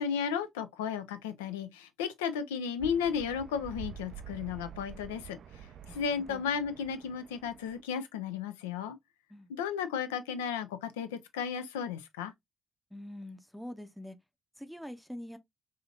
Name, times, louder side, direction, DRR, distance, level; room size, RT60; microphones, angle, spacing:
voice 1, 0.0-5.4 5.9-9.0 9.5-12.3, left 7 dB, 75° left, 0.4 m, -34 dB
sound 1, 2.8-7.8, right 8 dB, 55° right, 0.3 m, -47 dB
voice 2, 12.9-14.2 14.6-15.4, left 1 dB, ahead, 0.6 m, -44 dB
4.9 x 2.7 x 2.4 m
figure-of-eight pair, 40°, 0 cm